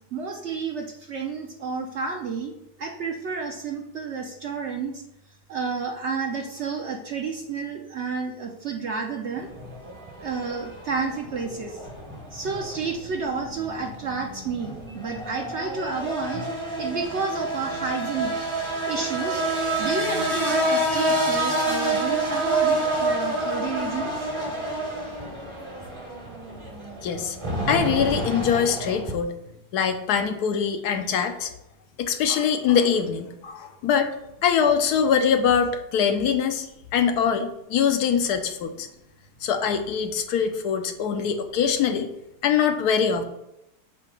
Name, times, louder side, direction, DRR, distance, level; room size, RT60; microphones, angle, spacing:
voice 1, 0.1-2.5 2.8-5.0 5.5-9.5 10.2-11.8 12.3-16.5 16.8-18.4 18.9-19.4 19.8-24.3, right 5 dB, 60° right, 2 dB, 0.8 m, -30 dB
sound 1, 9.4-29.1, right 1 dB, 25° right, 0.8 m, -28 dB
voice 2, 27.0-27.4 27.7-29.4 29.7-31.5 32.0-34.1 34.4-36.7 36.9-38.9 39.4-42.1 42.4-43.2, left 7 dB, 75° left, 7 dB, 1.1 m, -23 dB
8.1 x 2.8 x 5.2 m, 0.86 s
omnidirectional pair, 1.7 m